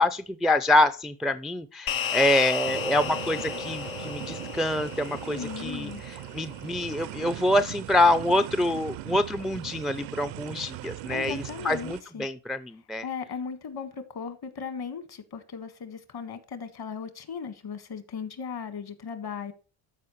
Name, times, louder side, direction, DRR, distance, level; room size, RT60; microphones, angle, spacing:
voice 1, 0.0-13.0, left 1 dB, ahead, 12 dB, 0.4 m, -26 dB
sound 1, 1.9-6.5, left 8 dB, 90° left, 1.3 m, -34 dB
sound 2, 2.6-12.0, right 15 dB, 75° right, 0.6 m, -39 dB
voice 2, 5.3-6.0 11.1-12.3 13.0-19.5, left 6 dB, 55° left, 11 dB, 1.7 m, -37 dB
13.5 x 4.7 x 3.1 m, 0.34 s
supercardioid pair, 80°, 46 cm